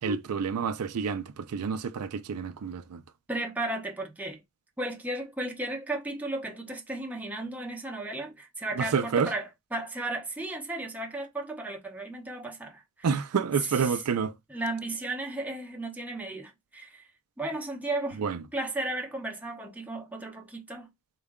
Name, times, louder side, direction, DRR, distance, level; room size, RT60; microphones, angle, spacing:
voice 1, 0.0-3.0 8.8-9.3 13.0-14.4 18.2-18.4, right 6 dB, 80° right, 0.4 m, -29 dB
voice 2, 3.3-4.4 4.8-12.8 14.5-17.1 17.4-18.2 18.5-20.9, right 2 dB, 5° right, 0.7 m, -34 dB
3.9 x 2.2 x 3.5 m
head